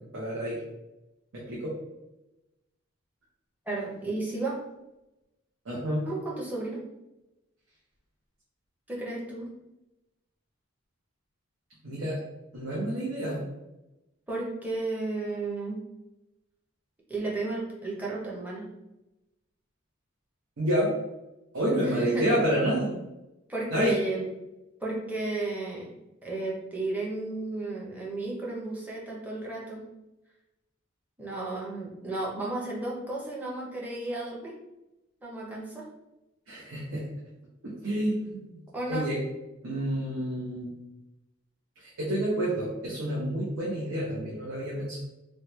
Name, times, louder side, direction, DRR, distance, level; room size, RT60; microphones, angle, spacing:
voice 1, 0.1-0.6 1.3-1.7 5.6-6.1 11.8-12.2 12.5-13.4 20.6-20.9 21.5-22.9 23.7-24.0 36.5-37.1 37.6-38.6 38.9-39.2 39.6-40.7 41.8-45.0, right 1 dB, 75° right, -6 dB, 0.8 m, -29 dB
voice 2, 3.7-4.6 6.0-6.8 8.9-9.5 14.3-15.8 17.1-18.7 22.0-22.3 23.5-24.3 24.8-25.9 26.2-29.9 31.2-34.5 35.2-35.8 38.7-39.1, right 2 dB, 10° right, -4 dB, 0.6 m, -33 dB
3.0 x 2.2 x 3.0 m, 0.95 s
head